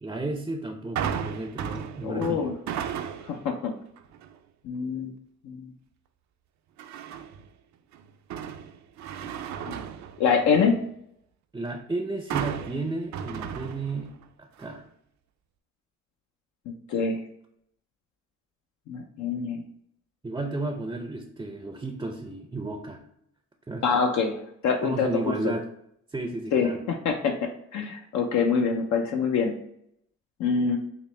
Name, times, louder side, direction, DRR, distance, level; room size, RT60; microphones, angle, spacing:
voice 1, 0.0-2.5 11.5-14.1 14.4-14.9 20.2-23.0 23.7-24.0 24.8-25.7 26.1-26.8, right 2 dB, 15° right, 3 dB, 0.4 m, -33 dB
sound 1, 1.0-3.5 4.0-4.3 6.8-7.5 7.9-10.8 12.3-14.2 14.6-14.7, right 8 dB, 65° right, 0.5 m, -35 dB
voice 2, 2.0-2.5 3.3-3.7 4.6-5.1 5.4-5.7 9.7-9.9 10.2-10.7 16.9-17.2 18.9-19.6 23.8-25.3 26.5-26.7 27.0-27.3 27.7-29.5 30.4-30.8, left 5 dB, 70° left, 2 dB, 0.6 m, -25 dB
5.7 x 2.1 x 3.2 m, 0.73 s
cardioid pair, 90°, 30 cm